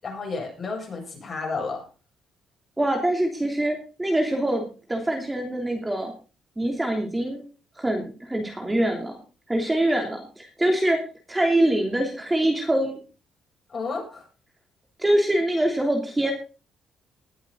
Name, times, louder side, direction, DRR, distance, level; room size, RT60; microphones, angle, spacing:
voice 1, 0.0-1.8 13.7-14.3, left 4 dB, 40° left, 0 dB, 7.6 m, -31 dB
voice 2, 2.8-4.6 4.9-6.1 6.6-7.4 7.8-9.2 9.5-11.0 11.3-13.0 15.0-16.3, right 1 dB, 15° right, 2 dB, 3.1 m, -24 dB
20.0 x 8.0 x 4.0 m, 0.35 s
cardioid pair, 90°, 0 cm